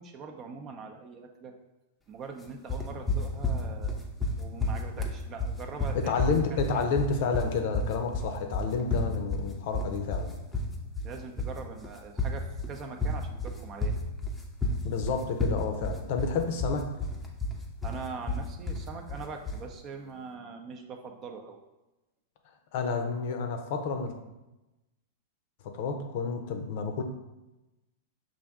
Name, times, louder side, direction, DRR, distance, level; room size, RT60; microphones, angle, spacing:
voice 1, 0.0-1.5 2.1-4.0 4.4-6.1 6.5-6.9 11.0-14.0 17.8-21.6, right 5 dB, 35° right, 4 dB, 0.6 m, -42 dB
sound 1, 2.7-19.7, left 2 dB, 10° left, 0.6 m, -31 dB
voice 2, 5.9-10.3 14.8-16.8 22.7-24.1 25.6-27.0, left 5 dB, 60° left, 5 dB, 0.6 m, -30 dB
5.6 x 2.6 x 3.6 m, 1.0 s
hypercardioid pair, 125°, 0 cm